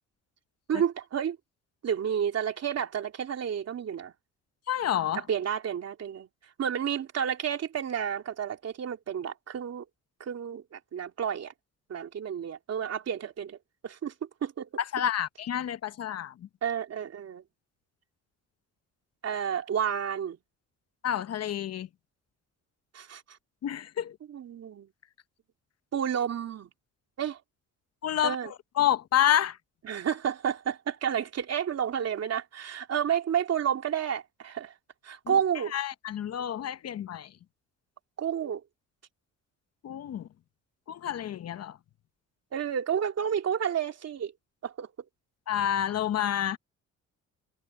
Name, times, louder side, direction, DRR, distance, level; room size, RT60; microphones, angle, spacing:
voice 1, 0.7-1.4 1.8-4.1 5.1-6.3 6.6-9.8 10.2-11.5 11.9-13.6 13.8-14.1 14.4-14.7 16.6-17.4 19.2-20.4 22.9-23.4 24.3-24.9 25.9-26.7 27.2-27.4 28.2-28.5 29.8-34.7 35.0-35.7 38.2-38.6 42.5-44.3 44.6-44.9, right 8 dB, 55° right, 3.1 m, -30 dB
voice 2, 4.7-5.2 14.8-16.5 21.0-21.9 23.6-24.2 28.0-29.6 35.3-35.4 35.7-37.3 39.8-40.3 40.9-41.8 45.5-46.6, left 10 dB, 55° left, 0.9 m, -29 dB
cardioid pair, 90°, 30 cm